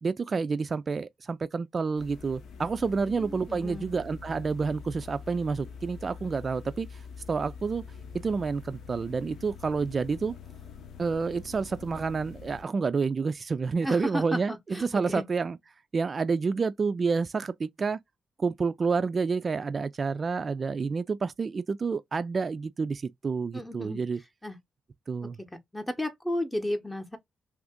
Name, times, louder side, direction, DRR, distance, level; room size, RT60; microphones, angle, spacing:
voice 1, 0.0-7.0 7.3-7.8 8.2-10.3 11.0-15.6 15.9-18.0 18.4-24.2 25.1-25.4, right 4 dB, 45° right, 0.3 m, -29 dB
sound 1, 2.0-12.6, left 6 dB, 75° left, 0.8 m, -45 dB
voice 2, 3.1-3.9 13.8-15.2 23.5-24.0 24.4-24.6 25.2-25.3 25.7-27.2, left 1 dB, 10° left, 0.8 m, -33 dB
2.7 x 2.5 x 3.6 m
supercardioid pair, 55°, 0 cm